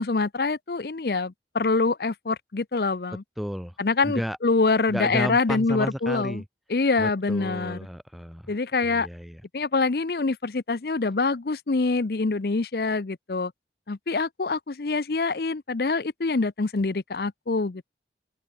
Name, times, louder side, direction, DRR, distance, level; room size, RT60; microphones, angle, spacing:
voice 1, 0.0-3.2 3.8-6.4 6.7-7.9 8.5-9.1 9.5-13.5 13.9-17.9, left 3 dB, 60° left, 0.6 m, -25 dB
voice 2, 3.4-3.8 4.0-4.4 4.9-6.4 7.0-8.5 8.8-9.4, equal, ahead, 1.8 m, -32 dB
open air
head